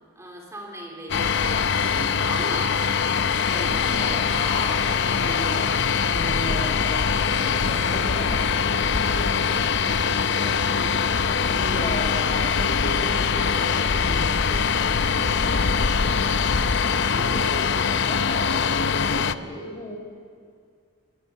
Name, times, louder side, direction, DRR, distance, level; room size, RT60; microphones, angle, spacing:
voice 1, 0.1-2.8 3.5-4.3 11.7-12.1 17.5-18.1, right 1 dB, 15° right, 0 dB, 3.4 m, -39 dB
sound 1, 1.1-19.3, left 6 dB, 55° left, 0.7 m, -23 dB
voice 2, 3.5-10.9 11.5-16.6 17.1-20.0, left 1 dB, 30° left, 1 dB, 4.1 m, -36 dB
27.5 x 21.5 x 7.2 m, 2.2 s
head